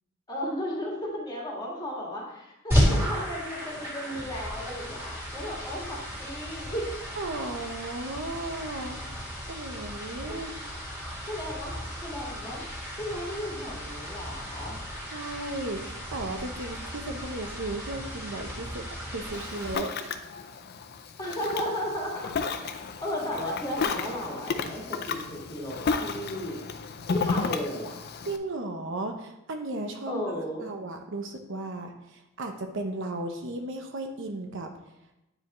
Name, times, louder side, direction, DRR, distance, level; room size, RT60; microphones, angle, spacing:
voice 1, 0.3-6.9 11.3-11.7 12.0-12.6 13.0-14.8 21.2-22.6 23.0-26.6 27.1-27.9 30.1-30.7, equal, 20° left, -4 dB, 1.9 m, -34 dB
sound 1, 2.7-19.8, equal, 10° right, 2.5 m, -33 dB
voice 2, 7.2-9.0 9.5-10.5 15.1-18.8 19.1-20.1 28.2-30.2 30.6-34.7, right 2 dB, 65° right, 5 dB, 0.7 m, -35 dB
Ocean, 19.3-28.4, left 5 dB, 50° left, 0.5 m, -33 dB
9.7 x 4.8 x 3.1 m, 0.89 s
head